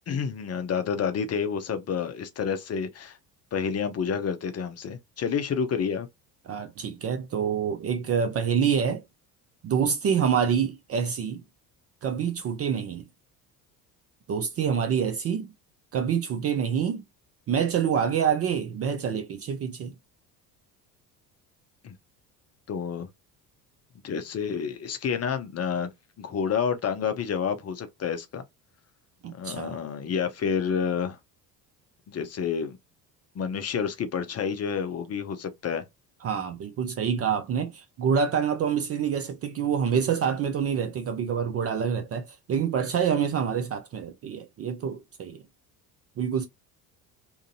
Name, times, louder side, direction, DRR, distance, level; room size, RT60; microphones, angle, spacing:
voice 1, 0.1-3.2 3.5-6.1 21.8-21.9 22.7-23.1 24.0-25.9 26.2-28.4 29.3-31.2 32.1-32.8 33.3-35.8, left 7 dB, 30° left, 0.6 m, -29 dB
voice 2, 6.5-9.0 9.6-11.4 12.0-13.1 14.3-15.5 15.9-17.0 17.5-19.9 29.2-29.8 36.2-45.4 46.2-46.5, right 7 dB, 30° right, 0.4 m, -27 dB
2.7 x 2.5 x 2.6 m
hypercardioid pair, 60°, 49 cm